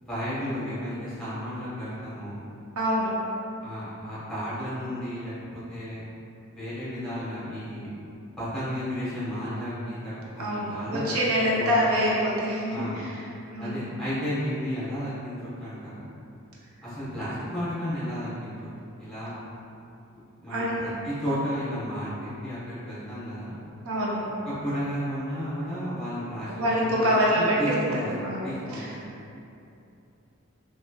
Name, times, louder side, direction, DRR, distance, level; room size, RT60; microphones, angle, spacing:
voice 1, 0.0-2.4 3.6-6.0 6.5-7.9 8.4-11.1 11.5-11.8 12.7-13.0 13.6-16.1 16.8-18.5 19.0-19.4 20.4-23.5 24.4-28.1 28.4-29.1, equal, ahead, -12 dB, 0.9 m, -33 dB
voice 2, 2.8-3.1 10.4-13.1 13.5-13.9 20.5-20.8 23.8-24.2 26.5-27.6 27.9-28.9, equal, 80° right, -5 dB, 0.6 m, -25 dB
3.2 x 3.1 x 2.2 m, 2.8 s
head